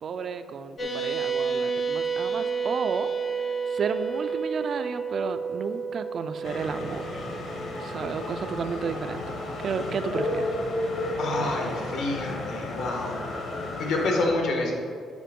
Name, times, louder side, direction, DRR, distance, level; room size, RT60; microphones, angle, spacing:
voice 1, 0.0-3.1 3.7-7.1 7.8-9.2 9.6-10.4, right 5 dB, 40° right, 10 dB, 0.3 m, -32 dB
sound 1, 0.8-8.8, right 5 dB, 25° left, 0.8 m, -31 dB
sound 2, 6.4-14.3, left 1 dB, 50° left, 1.1 m, -32 dB
voice 2, 11.2-13.2 13.8-14.8, left 2 dB, 70° left, 1 dB, 1.4 m, -28 dB
7.5 x 5.2 x 5.2 m, 2.3 s
cardioid pair, 175°, 0 cm